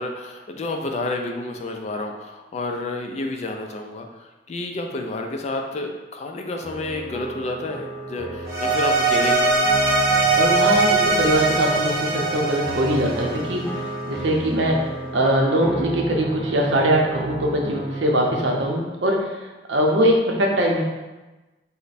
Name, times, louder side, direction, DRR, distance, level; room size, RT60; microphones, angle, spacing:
voice 1, 0.0-9.7, left 2 dB, 35° left, 3 dB, 0.3 m, -30 dB
sound 1, 6.6-18.6, right 2 dB, 5° left, 0.7 m, -32 dB
sound 2, 8.5-13.8, right 3 dB, 15° right, 1.0 m, -21 dB
voice 2, 10.4-13.7 14.1-20.8, equal, 80° right, 0 dB, 0.6 m, -22 dB
3.2 x 2.1 x 4.0 m, 1.1 s
head